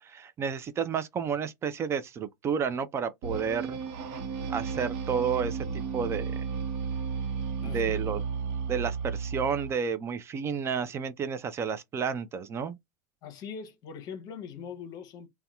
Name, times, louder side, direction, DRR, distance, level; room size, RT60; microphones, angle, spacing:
voice 1, 0.0-3.8 4.5-6.4 7.6-8.2 8.7-12.8, right 6 dB, 30° right, 0.4 m, -31 dB
sound 1, 3.2-9.7, right 5 dB, 60° right, 0.9 m, -33 dB
voice 2, 7.6-7.9 13.2-15.3, left 6 dB, 45° left, 0.7 m, -41 dB
2.7 x 2.2 x 2.3 m
hypercardioid pair, 95°, 9 cm